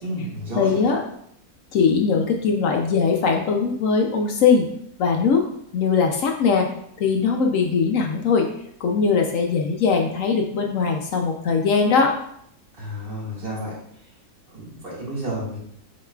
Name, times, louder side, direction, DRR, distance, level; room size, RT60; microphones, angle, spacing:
voice 1, 0.0-0.9 12.8-13.7 14.5-15.6, right 1 dB, 35° right, -7 dB, 1.8 m, -31 dB
voice 2, 0.6-1.0 1.7-4.7 5.0-5.4 5.7-6.7 7.0-8.5 8.8-12.1, left 5 dB, 70° left, 2 dB, 0.8 m, -20 dB
7.5 x 3.1 x 2.3 m, 0.71 s
omnidirectional pair, 1.7 m